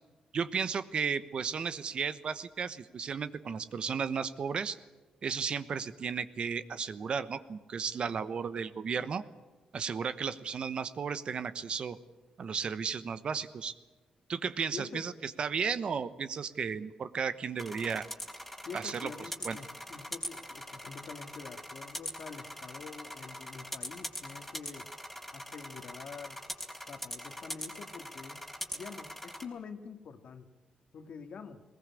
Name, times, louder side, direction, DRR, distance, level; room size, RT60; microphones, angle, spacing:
voice 1, 0.3-4.8 5.2-9.2 9.7-12.0 12.4-13.7 14.3-18.1 18.7-19.1 19.4-19.6, right 6 dB, 50° right, 13 dB, 1.1 m, -34 dB
voice 2, 14.7-15.1 18.6-24.9 25.3-26.4 26.9-28.5 28.7-30.5 30.9-31.6, left 5 dB, 60° left, 8 dB, 2.0 m, -46 dB
sound 1, 17.6-29.4, equal, ahead, 3.6 m, -42 dB
20.5 x 19.0 x 8.4 m, 1.2 s
cardioid pair, 100°, 2 cm